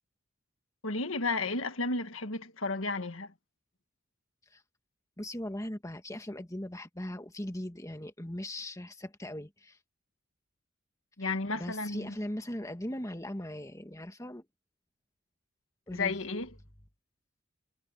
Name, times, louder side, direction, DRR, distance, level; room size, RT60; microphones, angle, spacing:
voice 1, 0.8-3.3 11.2-12.1 15.9-16.5, left 3 dB, 85° left, 1.7 m, -33 dB
voice 2, 5.2-9.8 11.2-14.4 15.9-16.2, left 1 dB, 15° left, 1.8 m, -39 dB
head